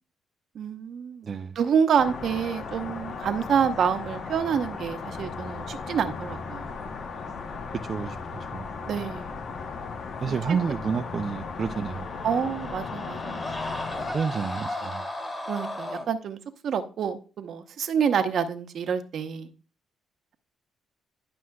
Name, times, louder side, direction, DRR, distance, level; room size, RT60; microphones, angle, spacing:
voice 1, 0.5-1.3 1.5-6.7 8.8-9.4 10.3-10.6 12.2-13.7 15.5-16.4 16.6-19.5, right 7 dB, 65° right, 0.9 m, -27 dB
voice 2, 1.2-1.6 7.9-8.7 10.2-12.1 14.1-15.0, right 6 dB, 45° right, 0.4 m, -29 dB
sound 1, 2.0-14.1, left 4 dB, 55° left, 1.0 m, -36 dB
sound 2, 11.6-16.1, left 1 dB, 20° left, 1.8 m, -35 dB
11.0 x 6.1 x 2.3 m
cardioid pair, 90°, 0 cm